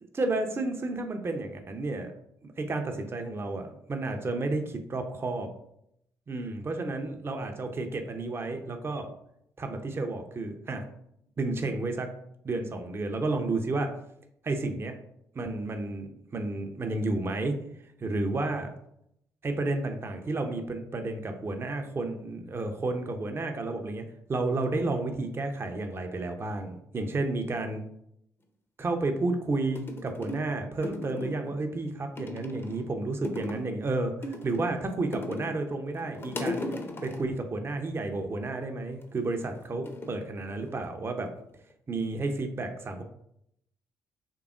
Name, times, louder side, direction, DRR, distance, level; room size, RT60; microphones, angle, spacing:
voice 1, 0.1-2.1 2.4-5.5 6.3-9.1 9.6-10.8 11.4-12.1 12.4-13.9 14.4-15.0 15.3-17.6 18.0-18.7 19.4-24.0 24.3-27.8 28.8-36.6 37.0-41.3 41.9-43.0, right 2 dB, 25° right, 5 dB, 0.6 m, -31 dB
sound 1, 29.3-29.4 29.8-30.5 30.8-31.6 32.2-32.9 33.2-33.8 34.2-35.6 35.9-37.3 38.9-39.4 39.9-40.9 41.2-41.7, left 2 dB, 25° left, 0.6 m, -37 dB
4.6 x 3.3 x 2.4 m, 0.75 s
figure-of-eight pair, 40°, 9 cm